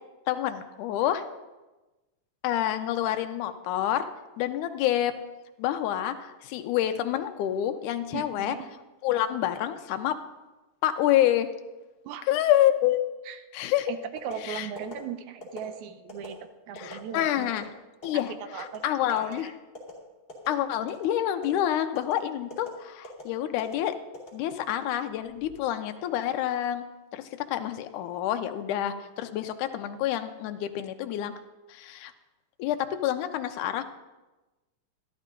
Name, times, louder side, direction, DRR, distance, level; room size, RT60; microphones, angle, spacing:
voice 1, 0.3-1.2 2.4-4.1 4.4-5.1 5.6-8.6 9.0-10.2 10.8-11.5 12.3-13.0 13.5-13.9 14.4-14.7 16.8-17.7 18.0-19.5 20.5-24.0 24.3-26.8 27.1-31.3 31.7-32.1 32.6-33.8, left 12 dB, 75° left, 8 dB, 2.1 m, -27 dB
voice 2, 8.1-8.7 12.1-12.2 13.3-13.4 13.9-17.5 18.5-18.8 19.1-19.5, right 8 dB, 75° right, 9 dB, 1.9 m, -38 dB
sound 1, 14.2-14.4 14.8-14.9 15.4-15.6 16.1-16.3 16.7-16.9 17.4-17.6 18.0-18.2 18.6-18.8 19.2-19.3 19.7-19.9 20.3-20.5 20.9-21.1 21.4-21.6 21.9-22.1 22.5-22.7 23.0-23.2 23.6-23.7 24.1-24.8 25.2-25.5, left 2 dB, 20° left, 2.8 m, -42 dB
13.0 x 12.0 x 3.8 m, 1.1 s
omnidirectional pair, 3.8 m